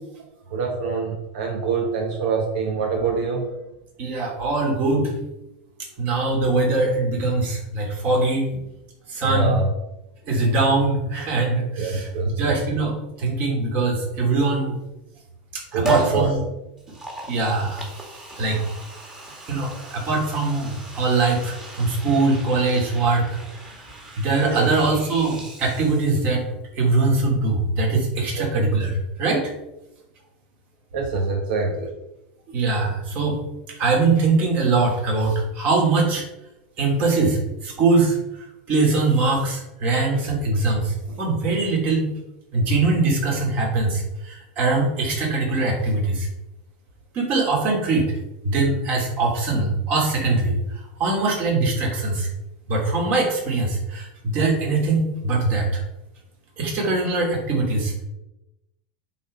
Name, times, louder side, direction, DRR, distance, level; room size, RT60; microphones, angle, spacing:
voice 1, 0.5-3.5 9.2-9.7 11.8-12.5 15.7-16.3 24.5-24.7 28.4-28.6 30.9-31.9, right 4 dB, 75° right, 1 dB, 1.5 m, -25 dB
voice 2, 4.0-5.1 6.0-8.5 9.1-9.6 10.3-12.1 12.4-12.9 13.2-14.8 15.5-16.4 17.3-17.8 18.4-18.6 19.5-23.3 24.2-26.4 26.7-28.9 29.2-29.5 32.5-33.4 33.8-36.2 36.8-38.2 38.7-42.1 42.5-46.3 47.1-48.1 48.4-50.6 51.0-52.3 52.7-55.8 56.6-58.0, right 3 dB, 40° right, -1 dB, 3.0 m, -22 dB
Liquid, 15.8-16.2 16.8-26.4 26.7-26.8, right 3 dB, 15° right, 2.2 m, -35 dB
8.2 x 4.1 x 5.5 m, 0.91 s
supercardioid pair, 140°, 5 cm